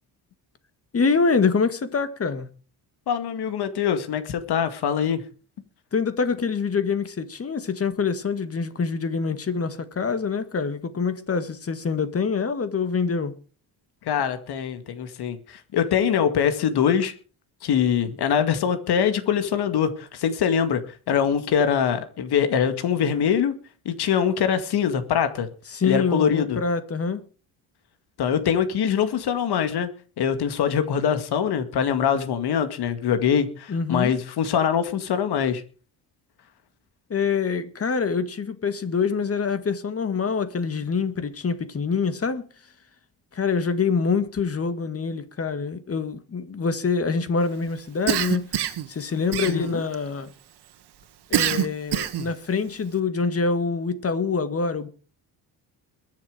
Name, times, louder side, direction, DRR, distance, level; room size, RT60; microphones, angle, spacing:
voice 1, 0.9-2.5 5.9-13.3 25.7-27.2 33.7-34.1 37.1-42.5 43.3-48.6 48.9-50.3 51.3-54.9, left 5 dB, 35° left, 1.9 m, -25 dB
voice 2, 3.1-5.2 14.0-17.1 17.6-20.8 21.1-23.5 23.9-25.5 25.8-26.6 28.2-29.9 30.2-35.6 49.4-49.8, left 8 dB, 70° left, 2.2 m, -23 dB
Cough, 48.1-48.9 49.3-49.9 51.3-52.3, right 11 dB, 75° right, 1.7 m, -25 dB
22.0 x 7.4 x 5.0 m
cardioid pair, 115°, 40 cm